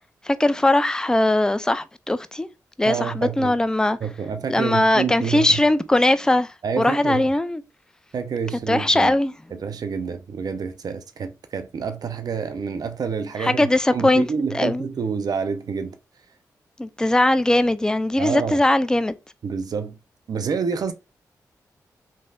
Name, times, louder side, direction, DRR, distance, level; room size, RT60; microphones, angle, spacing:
voice 1, 0.2-2.5 2.8-4.0 4.5-6.5 6.8-7.6 8.7-9.3 13.4-14.9 16.8-19.1, left 1 dB, 10° left, 0.3 m, -20 dB
voice 2, 2.8-3.5 4.0-5.6 6.6-7.3 8.1-9.2 9.5-16.0 18.2-18.6 19.4-20.0 20.3-20.9, right 6 dB, 65° right, 0.5 m, -28 dB
3.2 x 2.6 x 2.3 m
cardioid pair, 45°, 7 cm